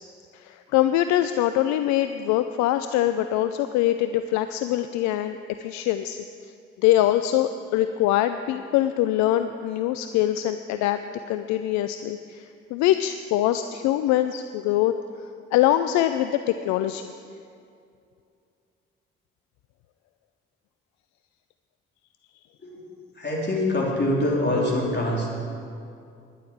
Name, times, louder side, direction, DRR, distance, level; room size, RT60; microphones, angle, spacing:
voice 1, 0.3-6.2 6.8-11.0 11.3-14.9 15.5-17.1, left 13 dB, 70° left, 10 dB, 0.5 m, -23 dB
voice 2, 23.1-25.3, left 1 dB, 35° left, -3 dB, 3.8 m, -24 dB
10.5 x 7.6 x 8.6 m, 2.4 s
hypercardioid pair, 45°, 29 cm